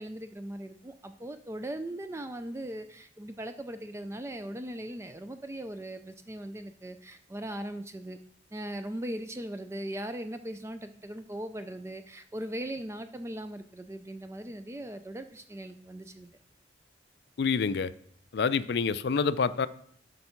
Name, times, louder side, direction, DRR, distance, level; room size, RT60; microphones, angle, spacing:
voice 1, 0.0-8.2 8.5-16.4, right 1 dB, 15° right, 9 dB, 0.3 m, -39 dB
voice 2, 17.4-17.9 18.3-19.7, left 5 dB, 60° left, 15 dB, 0.4 m, -27 dB
7.8 x 5.3 x 5.9 m, 0.64 s
head